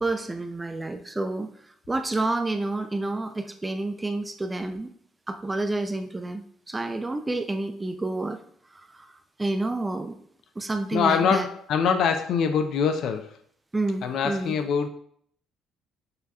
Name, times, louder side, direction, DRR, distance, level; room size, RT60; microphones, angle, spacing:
voice 1, 0.0-1.5 1.9-4.9 5.3-8.4 8.7-9.1 9.4-10.2 10.6-11.5 13.7-14.5, right 2 dB, 15° right, 7 dB, 0.3 m, -29 dB
voice 2, 10.9-13.3 14.0-14.9, left 6 dB, 65° left, 7 dB, 0.4 m, -24 dB
6.7 x 2.8 x 2.3 m, 0.62 s
cardioid pair, 110°, 0 cm